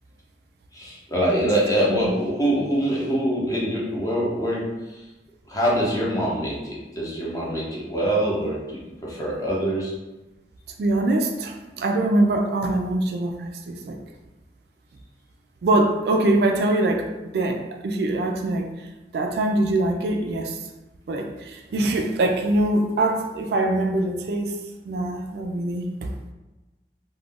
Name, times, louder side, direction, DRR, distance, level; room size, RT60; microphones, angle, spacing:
voice 1, 0.7-5.0 5.5-9.9, right 1 dB, 20° left, -5 dB, 0.6 m, -24 dB
voice 2, 10.8-14.0 15.6-18.9 19.1-20.6 21.1-26.1, right 2 dB, 60° right, 3 dB, 0.3 m, -23 dB
2.4 x 2.1 x 3.5 m, 1.1 s
head